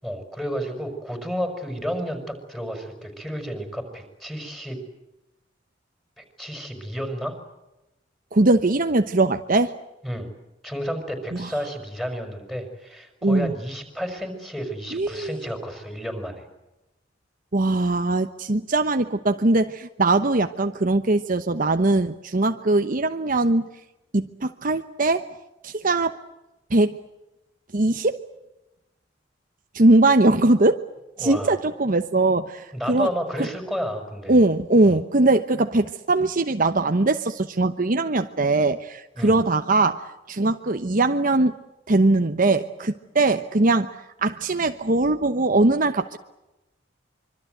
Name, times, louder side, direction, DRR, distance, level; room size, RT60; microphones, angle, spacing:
voice 1, 0.0-4.8 6.2-7.4 10.0-10.3 10.6-16.5 31.2-31.6 32.7-34.3 34.8-35.0 39.2-39.3, equal, ahead, 5 dB, 5.6 m, -31 dB
voice 2, 8.3-9.7 11.4-11.5 13.2-13.5 14.9-15.4 17.5-23.7 24.1-25.3 25.6-26.2 26.7-27.0 27.7-28.2 29.7-30.8 31.2-33.1 34.3-41.5 41.9-43.9 44.2-46.2, right 2 dB, 45° right, 8 dB, 1.0 m, -21 dB
25.5 x 24.5 x 8.0 m, 0.97 s
head